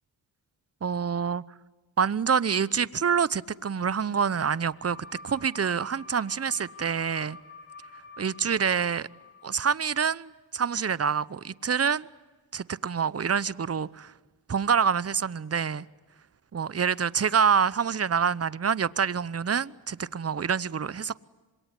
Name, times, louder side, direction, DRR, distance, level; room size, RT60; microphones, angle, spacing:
voice 1, 0.8-1.4 2.0-5.0 5.2-7.4 8.2-9.1 9.4-12.1 12.5-14.1 14.5-15.9 16.5-21.2, right 6 dB, 30° right, 0.9 m, -26 dB
sound 1, 3.9-9.7, left 3 dB, 30° left, 6.1 m, -48 dB
26.5 x 22.5 x 9.8 m
cardioid pair, 45°, 46 cm